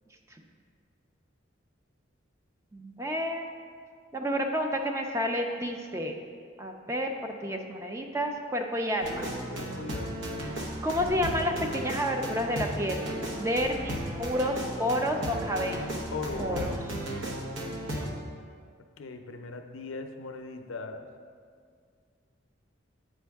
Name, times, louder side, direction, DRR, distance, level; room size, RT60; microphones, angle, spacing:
voice 1, 2.7-3.4 4.1-6.2 6.6-9.3 10.8-13.0 13.4-15.9 16.4-16.7, equal, 15° right, 3 dB, 0.4 m, -30 dB
sound 1, 9.0-18.1, right 1 dB, 75° right, 0.9 m, -35 dB
voice 2, 9.5-10.4 16.1-16.6 19.0-21.0, left 4 dB, 85° left, 6 dB, 0.5 m, -39 dB
8.3 x 5.2 x 3.5 m, 2.1 s
head